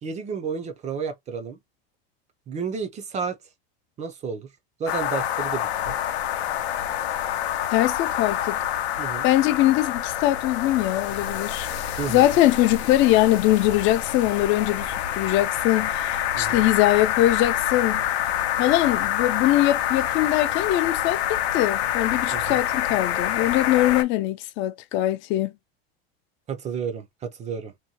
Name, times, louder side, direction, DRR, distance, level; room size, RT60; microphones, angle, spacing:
voice 1, 0.0-1.6 2.5-3.4 4.0-4.5 4.8-6.0 9.0-9.3 12.0-12.4 16.4-16.6 22.3-22.6 26.5-27.7, right 6 dB, 25° right, 0.4 m, -31 dB
sound 1, 4.9-24.0, left 11 dB, 85° left, 0.6 m, -27 dB
voice 2, 7.7-8.6 9.2-11.7 12.1-18.0 18.6-25.5, left 15 dB, 40° left, 0.4 m, -22 dB
2.8 x 2.1 x 2.8 m
supercardioid pair, 130°, 31 cm